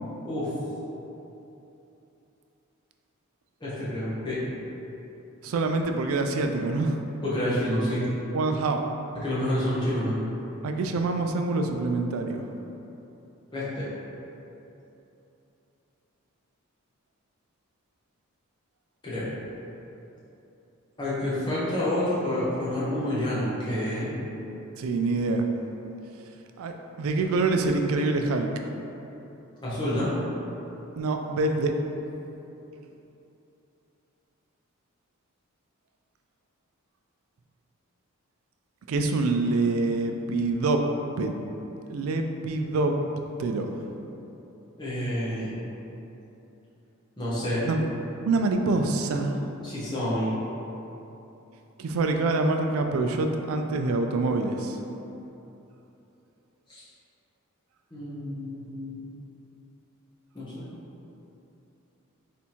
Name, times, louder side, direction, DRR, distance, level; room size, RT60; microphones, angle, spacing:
voice 1, 3.6-4.4 7.2-8.0 9.2-10.2 13.5-13.9 19.0-19.3 21.0-24.1 29.6-30.1 44.8-45.5 47.2-47.6 49.6-50.3 56.7-56.8 57.9-59.1 60.3-60.6, left 1 dB, 20° left, -10 dB, 1.0 m, -28 dB
voice 2, 5.4-7.0 8.3-8.8 10.6-12.5 24.8-25.5 26.6-26.7 27.0-28.5 31.0-31.7 38.9-40.8 41.2-41.3 41.9-43.0 43.4-44.0 47.6-47.8 48.3-49.4 51.8-54.8, right 3 dB, 75° right, 5 dB, 0.3 m, -26 dB
3.5 x 2.9 x 4.2 m, 3.0 s
head